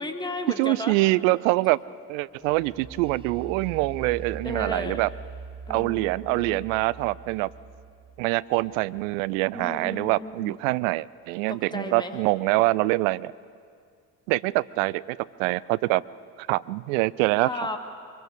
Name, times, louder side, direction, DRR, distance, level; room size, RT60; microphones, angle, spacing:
voice 1, 0.0-1.0 4.4-5.1 5.7-6.7 9.5-10.6 11.5-12.1 17.5-17.8, left 2 dB, 10° left, 6 dB, 1.8 m, -34 dB
voice 2, 0.6-1.8 2.1-5.1 5.7-7.5 8.2-13.3 14.3-16.0 16.5-17.5, right 20 dB, 60° right, 20 dB, 0.5 m, -25 dB
sound 1, 2.4-10.1, right 4 dB, 10° right, 0.8 m, -42 dB
24.0 x 22.5 x 5.0 m, 2.2 s
figure-of-eight pair, 50°, 46 cm